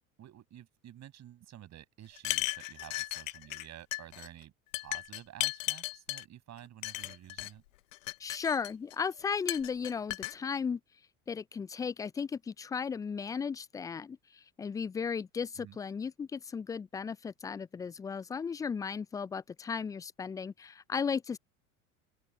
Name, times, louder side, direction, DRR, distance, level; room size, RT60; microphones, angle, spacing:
voice 1, 0.2-7.6 15.6-15.8, right 12 dB, 40° right, 6.6 m, -51 dB
sound 1, 2.2-3.7 3.9-4.3 4.7-6.2 6.8-7.5 7.9-8.9 9.5-10.3, left 19 dB, 65° left, 0.7 m, -35 dB
voice 2, 8.2-10.8 11.3-14.2 14.6-21.4, left 6 dB, 10° left, 0.3 m, -35 dB
open air
figure-of-eight pair, 75°, 42 cm